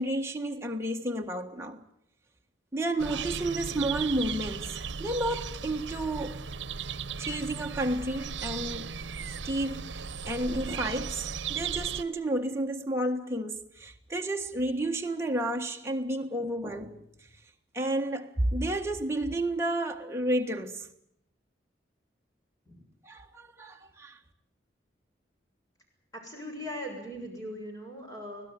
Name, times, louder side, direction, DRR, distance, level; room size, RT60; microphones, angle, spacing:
voice 1, 0.0-1.8 2.7-6.4 7.2-9.0 9.4-17.0 17.7-20.9 23.0-24.2, right 1 dB, 15° right, 1.6 m, -31 dB
sound 1, 3.0-12.0, right 6 dB, 80° right, 0.9 m, -36 dB
voice 2, 26.2-28.5, equal, 20° left, 7.5 m, -39 dB
24.5 x 17.0 x 9.4 m
head